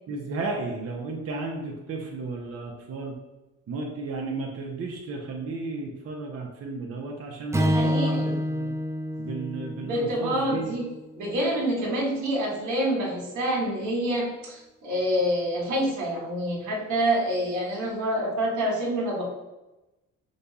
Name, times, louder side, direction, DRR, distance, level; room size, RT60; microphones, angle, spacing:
voice 1, 0.1-3.1 3.7-8.7 9.2-10.7, right 3 dB, 50° right, -1 dB, 0.8 m, -34 dB
Strum, 7.5-11.9, equal, 10° right, 0.4 m, -29 dB
voice 2, 7.6-8.3 9.8-10.9 11.2-19.2, right 1 dB, 85° right, -2 dB, 1.5 m, -27 dB
5.2 x 2.3 x 4.0 m, 1.0 s
cardioid pair, 90°, 30 cm